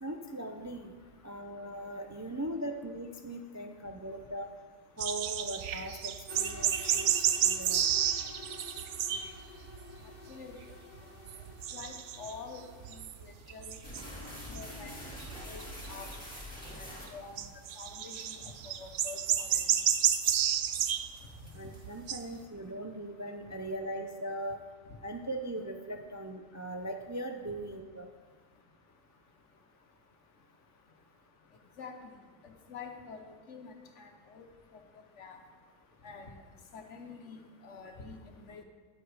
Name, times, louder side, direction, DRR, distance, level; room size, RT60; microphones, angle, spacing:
voice 1, 0.0-0.9 1.2-4.5 5.0-7.1 7.4-7.8 21.5-24.6 25.0-28.1, right 1 dB, 25° right, 4 dB, 0.4 m, -39 dB
sound 1, 5.0-9.4 9.6-10.2 10.6-11.0 11.3-14.2 14.6-14.7 15.2-16.1 17.4-21.1 21.4-21.5 21.8-22.2, right 9 dB, 75° right, 0.9 m, -31 dB
sound 2, 6.3-13.0, left 4 dB, 45° left, 0.9 m, -50 dB
voice 2, 11.7-13.0 13.5-13.7 14.5-14.9 15.5-16.1 16.8-17.4 17.8-18.5 18.8-19.6 31.8-32.0 32.7-33.2 33.5-34.5 35.2-35.4 36.0-36.3 36.7-38.6, left 5 dB, 75° left, 5 dB, 1.3 m, -46 dB
sound 3, 13.8-17.7 18.2-18.3 18.8-19.0 19.4-19.7 20.1-20.4 20.7-20.8 21.2-21.9, left 1 dB, 5° left, 2.6 m, -45 dB
10.5 x 8.2 x 4.8 m, 1.5 s
omnidirectional pair, 1.3 m